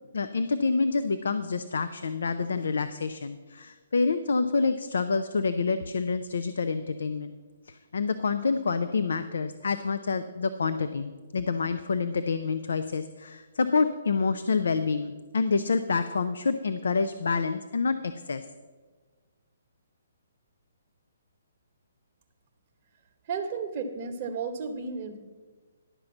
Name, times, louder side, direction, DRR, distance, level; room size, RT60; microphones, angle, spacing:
voice 1, 0.1-7.4 7.7-18.4, left 4 dB, 75° left, 11 dB, 0.5 m, -27 dB
voice 2, 23.3-25.2, right 5 dB, 35° right, 1 dB, 1.0 m, -33 dB
11.0 x 5.2 x 7.0 m, 1.4 s
hypercardioid pair, 150°, 0 cm